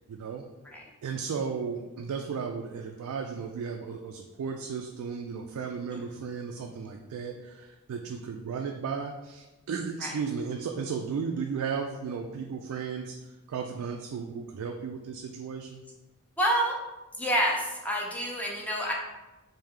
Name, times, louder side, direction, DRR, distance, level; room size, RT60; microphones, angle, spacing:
voice 1, 0.1-0.5 1.0-13.2 13.5-15.8, right 6 dB, 80° right, 3 dB, 0.3 m, -35 dB
voice 2, 16.4-16.8 17.2-18.9, right 1 dB, 5° left, -2 dB, 0.5 m, -28 dB
3.3 x 2.6 x 3.6 m, 1.1 s
head